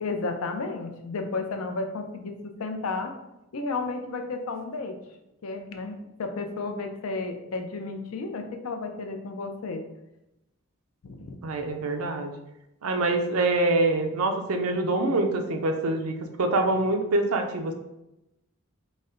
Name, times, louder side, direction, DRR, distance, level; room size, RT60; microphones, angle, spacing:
voice 1, 0.0-3.1 3.5-5.0 5.4-9.8 11.0-11.4, left 3 dB, 75° left, 5 dB, 0.5 m, -32 dB
voice 2, 11.4-12.3 12.8-17.7, right 2 dB, 85° right, 4 dB, 0.5 m, -25 dB
4.0 x 2.1 x 3.7 m, 0.91 s
head